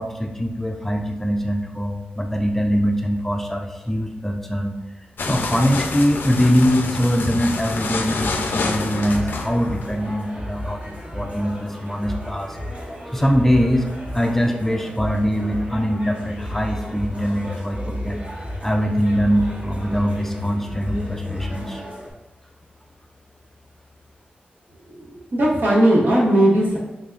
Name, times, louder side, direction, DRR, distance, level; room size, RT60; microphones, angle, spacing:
voice 1, 0.0-4.8 5.3-12.6 13.1-13.9 14.1-18.2 18.6-21.8, equal, 10° left, 3 dB, 0.4 m, -22 dB
sound 1, 5.2-10.2, left 3 dB, 80° left, 0.4 m, -27 dB
sound 2, 8.0-22.1, left 1 dB, 40° right, 1.1 m, -33 dB
voice 2, 25.0-26.8, right 1 dB, 75° right, -6 dB, 1.3 m, -17 dB
3.9 x 3.5 x 2.4 m, 1.1 s
wide cardioid pair, 80°, 3 cm